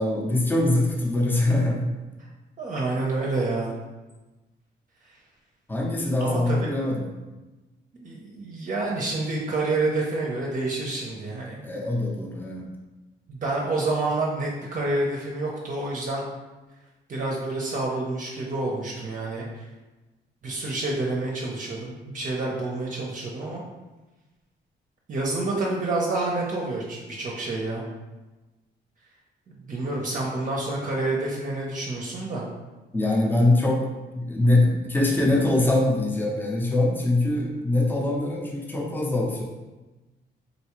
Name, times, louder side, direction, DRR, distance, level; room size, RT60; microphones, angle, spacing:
voice 1, 0.0-1.8 5.7-7.1 11.6-12.7 32.9-33.8 34.1-39.4, left 2 dB, 10° left, -2 dB, 0.6 m, -23 dB
voice 2, 2.6-3.8 6.2-6.7 8.0-11.6 13.3-16.2 17.1-19.6 20.4-23.6 25.1-27.8 29.7-32.5, right 2 dB, 40° right, -3 dB, 0.6 m, -28 dB
3.9 x 2.3 x 3.0 m, 1.1 s
cardioid pair, 90°, 20 cm